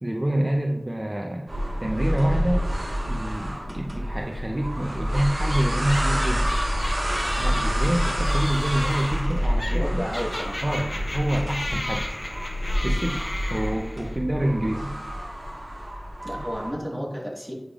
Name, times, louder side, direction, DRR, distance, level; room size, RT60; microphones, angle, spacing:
voice 1, 0.0-1.5 1.8-2.7 3.1-6.5 7.4-10.1 10.6-12.1 12.8-13.2 13.5-15.0, right 1 dB, 35° right, 1 dB, 0.5 m, -27 dB
sound 1, 1.5-16.7, equal, 80° right, 1.5 m, -27 dB
sound 2, 5.1-14.2, left 1 dB, 50° left, 1.1 m, -35 dB
voice 2, 9.7-10.6 16.2-17.5, equal, 5° left, -3 dB, 1.7 m, -32 dB
9.2 x 5.0 x 2.5 m, 0.91 s
wide cardioid pair, 50°, 0 cm